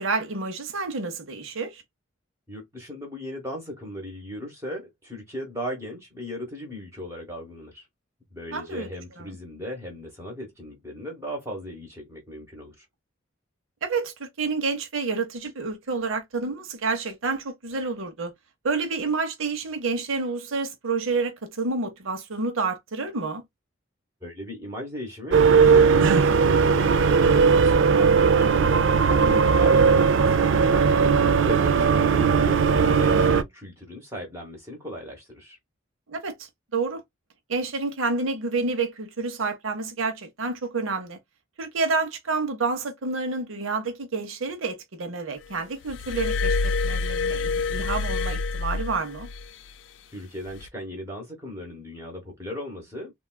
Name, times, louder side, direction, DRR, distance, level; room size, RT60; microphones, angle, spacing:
voice 1, 0.0-1.8 8.5-8.9 9.2-9.4 13.8-18.3 18.6-23.4 29.2-29.6 36.1-37.0 37.5-41.2 41.6-49.3, right 4 dB, 80° right, 0.8 m, -29 dB
voice 2, 2.5-7.9 8.3-12.8 24.2-28.5 29.0-35.6 50.1-53.1, equal, 15° right, 1.0 m, -37 dB
sound 1, 25.3-33.4, right 5 dB, 65° right, 0.4 m, -18 dB
Glass, 45.9-49.5 50.5-50.7, left 4 dB, 60° left, 0.3 m, -27 dB
3.6 x 2.3 x 2.2 m
head